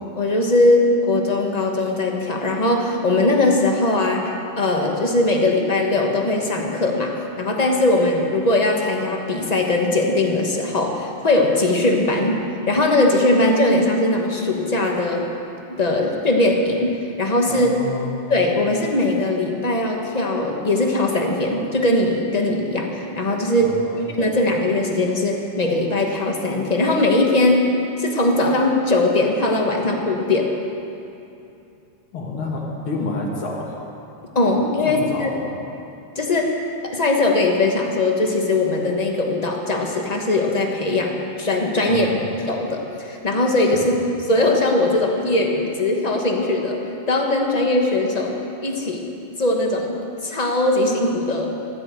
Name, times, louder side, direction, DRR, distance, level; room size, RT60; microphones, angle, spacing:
voice 1, 0.2-12.4 12.7-15.3 15.7-17.7 18.3-23.8 24.2-27.7 28.0-30.5 34.3-35.3 36.1-36.6 36.8-42.1 42.5-43.9 44.3-46.8 47.1-48.4 48.6-49.1 49.4-51.5, left 2 dB, 25° left, 1 dB, 1.2 m, -20 dB
voice 2, 17.5-18.1 23.6-24.0 32.1-33.8 34.8-35.4 41.9-42.2 43.7-43.9, left 3 dB, 80° left, -2 dB, 2.7 m, -29 dB
13.0 x 9.7 x 8.2 m, 2.7 s
omnidirectional pair, 2.3 m